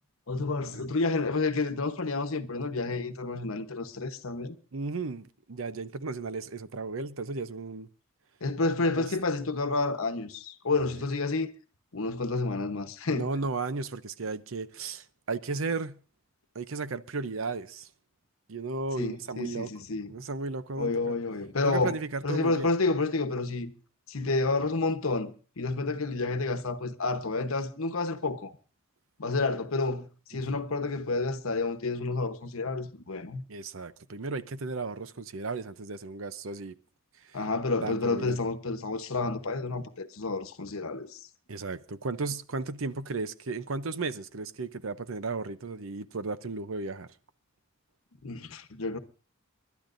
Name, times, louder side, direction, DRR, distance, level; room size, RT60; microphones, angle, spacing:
voice 1, 0.3-4.5 8.4-11.5 11.9-13.3 19.0-20.1 20.8-22.0 22.2-23.7 24.1-28.5 29.2-33.4 37.3-41.2 48.2-49.0, left 3 dB, 80° left, 1.1 m, -30 dB
voice 2, 4.7-7.9 8.9-9.1 13.1-16.0 16.5-17.9 18.5-19.7 20.1-21.2 21.6-22.7 30.3-30.6 33.5-36.8 37.3-37.4 37.8-38.4 41.5-47.1, right 3 dB, 70° right, 0.7 m, -35 dB
30.0 x 12.0 x 2.6 m
head